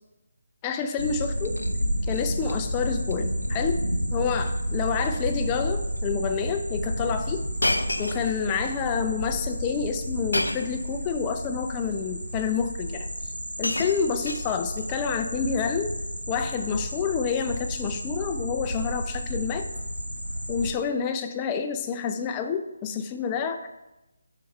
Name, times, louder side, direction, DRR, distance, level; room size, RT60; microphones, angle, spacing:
voice 1, 0.6-1.5 2.1-3.8 4.1-7.4 8.0-13.3 13.6-15.9 16.3-19.7 20.5-23.7, left 6 dB, 20° left, 6 dB, 0.5 m, -28 dB
sound 1, 1.0-20.7, equal, 85° right, 0.8 m, -31 dB
Shatter, 1.3-1.7 2.1-2.6 2.9-3.1 3.4-3.5 4.4-4.6 4.9-5.2 6.0-6.1 7.6-8.7 10.3-10.8 11.8-11.9 13.0-13.1 13.3-14.8 15.8-16.1, left 1 dB, 80° left, 0.5 m, -31 dB
6.4 x 4.1 x 5.3 m, 0.98 s
figure-of-eight pair, 150°, 0 cm